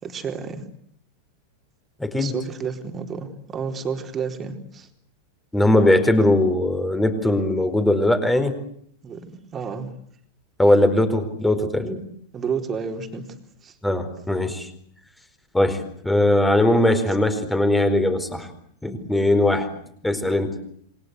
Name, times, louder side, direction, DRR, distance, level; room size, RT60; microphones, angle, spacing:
voice 1, 0.0-0.6 2.2-4.9 9.0-9.9 12.3-13.4 13.6-13.8, right 6 dB, 25° right, 5 dB, 4.1 m, -31 dB
voice 2, 2.0-2.3 5.5-8.5 10.6-12.0 13.8-14.7 15.5-18.5 18.8-19.7 20.0-20.6, left 1 dB, 5° left, 8 dB, 4.4 m, -20 dB
28.5 x 24.0 x 8.1 m, 0.67 s
figure-of-eight pair, 90°, 0 cm